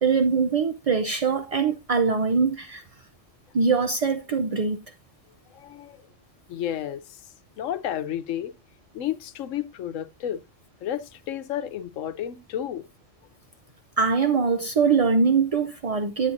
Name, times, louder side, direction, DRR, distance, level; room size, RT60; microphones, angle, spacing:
voice 1, 0.0-2.8 3.5-4.8 14.0-16.3, right 5 dB, 70° right, 0.3 m, -22 dB
voice 2, 5.5-6.0 6.5-7.2 7.6-8.5 8.9-10.4 10.8-12.8, left 10 dB, 85° left, 1.0 m, -31 dB
9.6 x 8.2 x 2.6 m
omnidirectional pair, 1.3 m